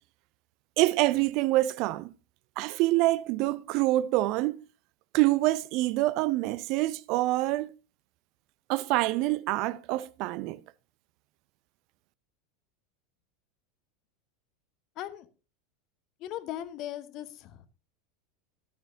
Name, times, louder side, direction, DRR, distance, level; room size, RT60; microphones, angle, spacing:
voice 1, 0.8-2.1 2.6-4.6 5.1-7.7 8.7-10.6, right 17 dB, 50° right, 0.4 m, -26 dB
voice 2, 15.0-15.3 16.2-17.7, left 12 dB, 45° left, 1.0 m, -38 dB
14.0 x 12.0 x 2.6 m
figure-of-eight pair, 80°, 0 cm